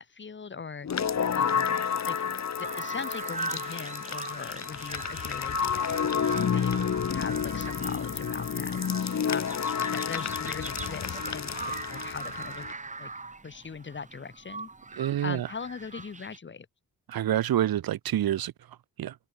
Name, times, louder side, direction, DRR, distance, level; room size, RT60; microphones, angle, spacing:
voice 1, 0.0-2.2 2.6-6.8 7.1-8.8 9.2-9.6 9.9-12.7 13.0-13.1 13.4-14.7 15.2-16.7, left 5 dB, 35° left, 1.3 m, -40 dB
sound 1, 0.8-12.7, left 7 dB, 50° left, 2.1 m, -30 dB
sound 2, 2.6-16.4, right 3 dB, 20° right, 1.4 m, -40 dB
voice 2, 15.0-15.5 17.1-18.5 19.0-19.1, right 11 dB, 85° right, 1.3 m, -27 dB
wide cardioid pair, 115°, 35 cm